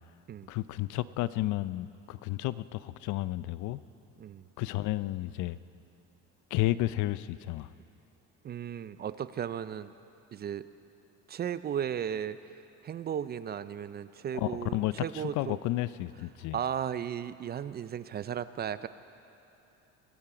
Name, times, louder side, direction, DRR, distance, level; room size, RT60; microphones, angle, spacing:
voice 1, 0.5-3.8 4.6-5.6 6.5-7.7 14.3-16.6, left 16 dB, 70° left, 16 dB, 0.5 m, -32 dB
voice 2, 8.4-9.9 10.3-10.6 11.3-12.4 12.8-15.6 16.5-18.9, right 9 dB, 35° right, 14 dB, 0.4 m, -35 dB
22.5 x 10.5 x 4.9 m, 2.8 s
cardioid pair, 105°, 31 cm